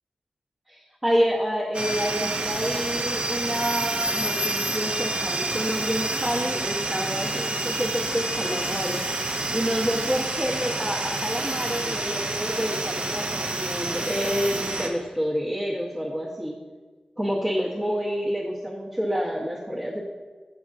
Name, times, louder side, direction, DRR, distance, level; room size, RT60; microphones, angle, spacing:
voice 1, 0.7-9.0 9.5-16.6 17.2-20.0, equal, 15° right, -7 dB, 0.7 m, -28 dB
sound 1, 1.7-14.9, right 2 dB, 45° right, 0.5 m, -28 dB
7.3 x 5.8 x 2.5 m, 1.3 s
wide cardioid pair, 110°, 3 cm